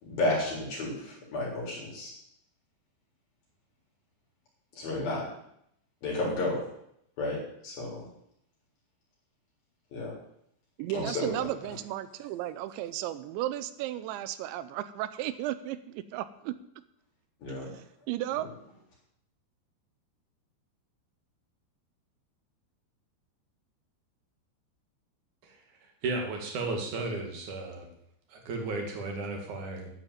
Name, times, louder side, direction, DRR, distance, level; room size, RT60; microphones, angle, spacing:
voice 1, 0.0-2.1 4.8-5.2 6.0-6.6 7.2-7.4 7.6-8.0 9.9-10.1 10.9-11.3 17.4-17.7, left 2 dB, 55° left, -3 dB, 5.7 m, -31 dB
voice 2, 10.8-16.5 17.5-18.5, right 13 dB, 85° right, 13 dB, 3.1 m, -34 dB
voice 3, 26.0-27.9 28.3-29.9, right 3 dB, 50° right, 3 dB, 3.1 m, -34 dB
11.0 x 9.1 x 8.8 m, 0.74 s
omnidirectional pair, 5.2 m